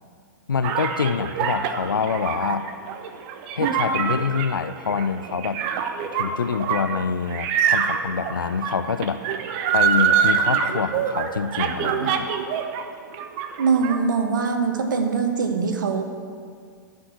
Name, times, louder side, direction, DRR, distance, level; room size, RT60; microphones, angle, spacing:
voice 1, 0.5-2.7 3.6-5.6 6.1-9.2 9.7-12.3, left 6 dB, 80° left, 13 dB, 0.5 m, -26 dB
sound 1, 0.6-12.8 13.1-14.0, right 7 dB, 40° right, 0.8 m, -25 dB
voice 2, 13.6-16.0, right 5 dB, 65° right, 5 dB, 1.2 m, -22 dB
9.9 x 5.2 x 8.3 m, 2.1 s
figure-of-eight pair, 105°, 11 cm